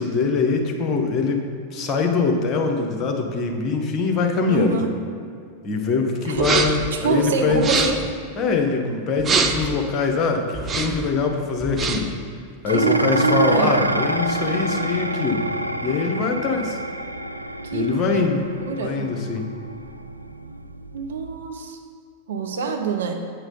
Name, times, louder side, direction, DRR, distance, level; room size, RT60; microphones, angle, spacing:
voice 1, 0.0-4.8 5.6-7.6 8.4-12.1 12.6-15.5 15.8-16.8 17.7-18.4 18.8-19.5, left 4 dB, 30° left, 3 dB, 1.2 m, -23 dB
voice 2, 4.5-4.9 6.3-6.5 6.9-8.0 12.7-13.8 17.6-18.3 18.6-19.1 20.9-21.8 22.3-23.1, right 5 dB, 65° right, 3 dB, 0.9 m, -25 dB
sound 1, 6.4-6.9 7.5-8.1 9.2-9.7 10.5-11.1 11.6-12.2, right 4 dB, 20° right, 0.7 m, -23 dB
Dishes pots and pans, 12.7-21.5, right 1 dB, 90° right, 0.4 m, -28 dB
8.7 x 5.8 x 5.5 m, 2.2 s
figure-of-eight pair, 90°, 0 cm